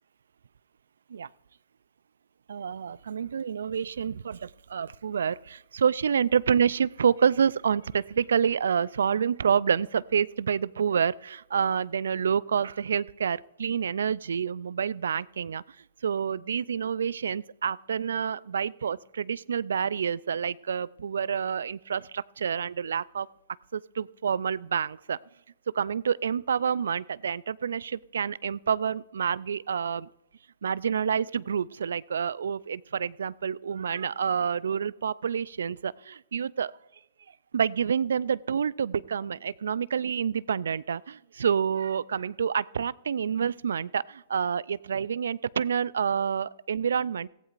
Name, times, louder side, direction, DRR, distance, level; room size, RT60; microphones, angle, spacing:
voice 1, 2.5-15.6 16.0-23.3 23.7-25.2 25.7-30.1 30.6-36.7 37.5-47.3, right 7 dB, 75° right, 22 dB, 0.3 m, -28 dB
17.0 x 15.5 x 2.5 m, 0.95 s
hypercardioid pair, 125°, 0 cm